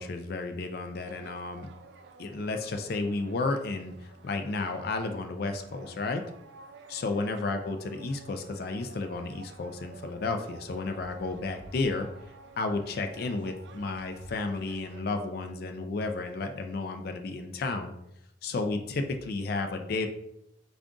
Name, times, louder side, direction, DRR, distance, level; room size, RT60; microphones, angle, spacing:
voice 1, 0.0-1.7 2.2-6.2 6.9-12.1 12.6-17.9 18.4-20.1, left 3 dB, 55° left, 6 dB, 0.4 m, -32 dB
sound 1, 0.9-15.0, right 4 dB, 70° right, 0.3 m, -52 dB
3.7 x 2.4 x 3.6 m, 0.80 s
head